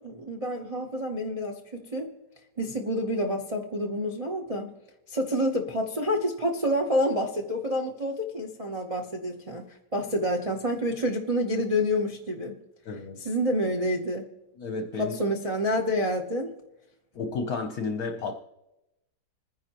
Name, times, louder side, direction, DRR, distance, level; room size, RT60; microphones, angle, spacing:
voice 1, 0.0-2.1 2.6-4.7 5.1-9.6 9.9-12.6 13.2-14.3 15.0-16.5, equal, 45° right, 2 dB, 0.4 m, -28 dB
voice 2, 12.9-13.2 14.6-15.2 17.1-18.3, left 4 dB, 60° left, 5 dB, 1.1 m, -32 dB
27.5 x 10.0 x 3.0 m, 0.92 s
omnidirectional pair, 2.2 m